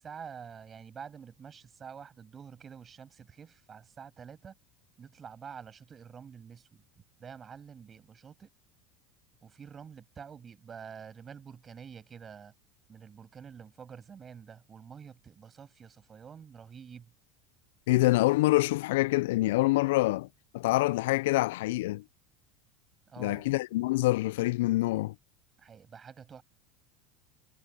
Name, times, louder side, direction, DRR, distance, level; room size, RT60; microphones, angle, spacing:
voice 1, 0.0-4.5 5.0-6.8 7.2-8.5 9.4-12.5 12.9-17.1 23.1-23.5 25.6-26.4, right 7 dB, 30° right, 6.6 m, -48 dB
voice 2, 17.9-20.3 20.5-22.0 23.2-25.1, left 19 dB, 80° left, 0.3 m, -26 dB
supercardioid pair, 100°, 0 cm